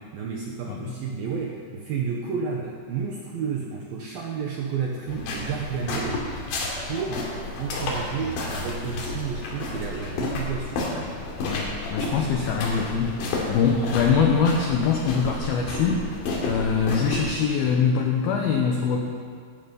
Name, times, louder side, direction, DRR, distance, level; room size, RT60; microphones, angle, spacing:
voice 1, 0.0-6.2 6.8-7.3 7.6-11.1, right 6 dB, 75° right, -1 dB, 2.2 m, -31 dB
sound 1, 5.1-17.3, left 2 dB, 65° left, 4.8 m, -31 dB
voice 2, 11.4-16.1 16.5-19.0, left 6 dB, 85° left, 2 dB, 2.2 m, -23 dB
18.5 x 14.0 x 5.5 m, 2.1 s
omnidirectional pair, 5.8 m